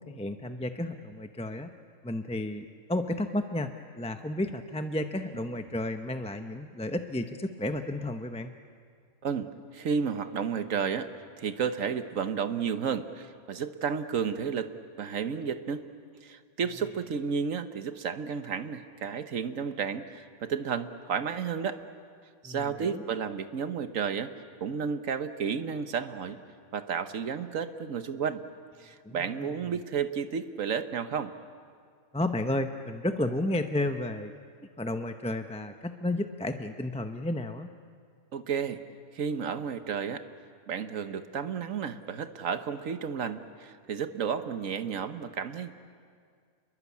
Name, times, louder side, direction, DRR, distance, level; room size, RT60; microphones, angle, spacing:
voice 1, 0.0-1.7 2.0-8.6 22.4-23.0 29.0-29.6 32.1-34.3 34.8-37.7, left 1 dB, 5° left, 7 dB, 0.5 m, -32 dB
voice 2, 9.7-14.7 15.0-15.8 16.2-21.8 22.4-24.3 24.6-26.4 26.7-28.4 28.8-31.3 38.3-38.8 39.1-40.2 40.7-45.7, right 6 dB, 65° right, 10 dB, 1.4 m, -32 dB
29.0 x 22.0 x 8.5 m, 2.1 s
omnidirectional pair, 1.5 m